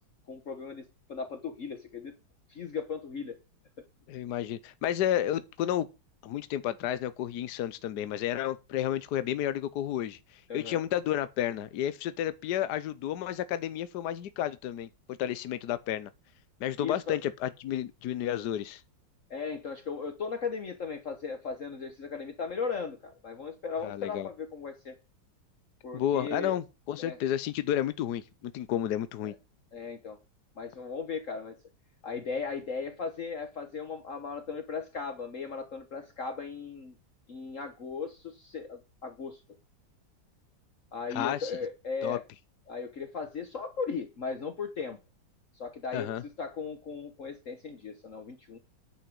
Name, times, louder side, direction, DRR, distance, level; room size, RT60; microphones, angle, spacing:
voice 1, 0.3-2.1 2.5-3.4 10.5-10.8 16.8-17.2 19.3-25.0 25.8-26.5 27.0-27.2 29.2-29.3 29.7-30.2 30.6-31.6 32.0-36.9 37.3-39.4 40.9-42.2 42.7-45.0 45.6-48.6, left 5 dB, 50° left, 1.4 m, -37 dB
voice 2, 4.1-5.9 6.2-16.1 16.6-18.8 23.8-24.3 25.9-29.3 41.1-41.5 42.0-42.2 45.9-46.2, left 11 dB, 70° left, 1.3 m, -31 dB
10.0 x 5.5 x 7.6 m
omnidirectional pair, 1.9 m